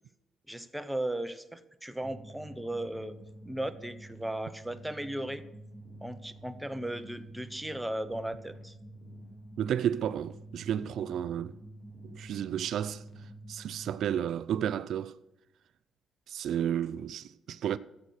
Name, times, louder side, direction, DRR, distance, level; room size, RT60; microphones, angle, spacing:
voice 1, 0.5-3.1 3.4-5.4 6.0-8.7, right 1 dB, 5° right, 1.0 m, -36 dB
sound 1, 2.0-14.2, right 1 dB, 30° left, 3.9 m, -49 dB
voice 2, 9.6-11.5 12.1-13.0 13.5-15.2 16.3-17.8, right 9 dB, 70° right, 0.4 m, -32 dB
13.5 x 8.3 x 6.5 m
cardioid pair, 90°, 0 cm